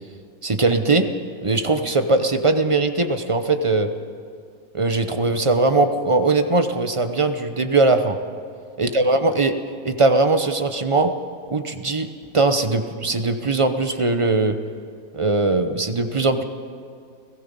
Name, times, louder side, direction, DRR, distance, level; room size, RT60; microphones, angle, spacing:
voice 1, 0.4-1.1 1.4-3.9 4.7-8.2 8.8-9.6 9.8-11.1 11.5-12.1 12.3-14.6 15.1-16.4, right 3 dB, 30° right, 8 dB, 0.6 m, -20 dB
30.0 x 17.5 x 5.4 m, 2.2 s
omnidirectional pair, 1.8 m